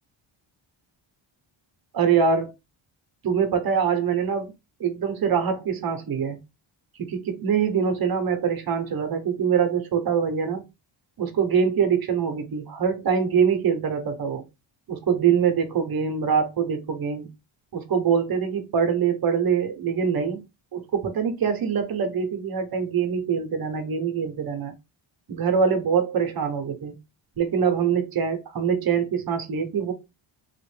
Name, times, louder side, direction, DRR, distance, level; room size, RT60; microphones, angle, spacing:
voice 1, 1.9-2.5 3.2-4.5 4.8-6.4 7.0-10.6 11.2-14.4 14.9-17.3 17.7-20.5 20.7-24.7 25.3-27.0 27.4-29.9, right 6 dB, 45° right, 0.8 m, -24 dB
3.4 x 2.4 x 3.2 m
wide cardioid pair, 165°, 48 cm